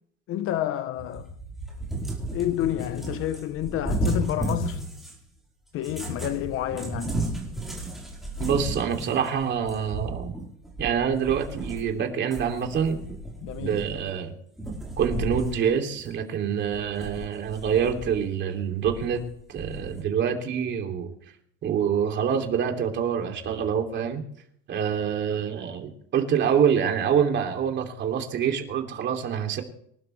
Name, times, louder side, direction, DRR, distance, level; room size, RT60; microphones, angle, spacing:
voice 1, 0.3-1.3 2.3-4.8 5.7-7.2 13.4-13.8, left 13 dB, 50° left, 0.9 m, -29 dB
Cat, 1.0-5.2 5.8-12.0 12.3-14.2 14.6-15.6 16.0-16.1 16.7-18.2 18.9-20.0, right 1 dB, ahead, 4.3 m, -33 dB
voice 2, 8.4-10.3 10.8-13.0 13.6-14.3 15.0-19.2 19.5-21.1 21.6-24.2 24.7-29.6, right 8 dB, 40° right, 2.9 m, -26 dB
25.0 x 12.0 x 3.3 m
cardioid pair, 155°, 29 cm